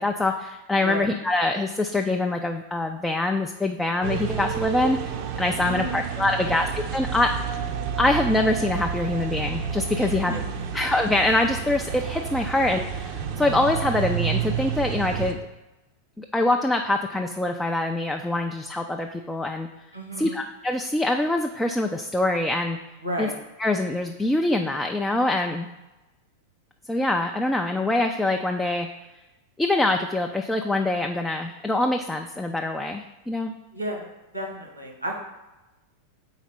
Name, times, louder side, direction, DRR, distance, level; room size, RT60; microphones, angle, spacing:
voice 1, 0.0-7.3 8.0-10.4 10.7-15.4 16.2-19.7 20.2-22.8 23.2-23.3 23.6-25.7 26.9-28.9 29.6-33.5, left 2 dB, 5° left, 3 dB, 0.3 m, -24 dB
sound 1, 4.0-15.3, right 7 dB, 45° right, 0.5 m, -30 dB
voice 2, 5.6-6.0 6.4-6.6 10.0-10.4 19.9-20.4 23.0-23.3 33.7-34.1 34.3-35.2, equal, 90° right, 1 dB, 1.1 m, -32 dB
4.2 x 4.0 x 5.6 m, 1.0 s
figure-of-eight pair, 90°, 0 cm